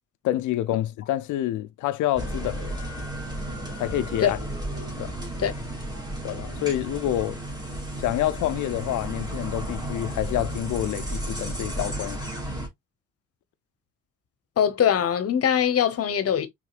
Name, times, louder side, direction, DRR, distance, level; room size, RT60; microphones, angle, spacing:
voice 1, 0.2-2.7 3.8-4.4 5.0-5.1 6.2-7.4 8.0-12.3, left 13 dB, 80° left, 0.5 m, -27 dB
sound 1, 2.2-12.7, right 1 dB, 15° right, 2.3 m, -33 dB
voice 2, 14.6-16.5, left 8 dB, 50° left, 1.0 m, -22 dB
4.8 x 3.7 x 2.4 m
cardioid pair, 90°, 30 cm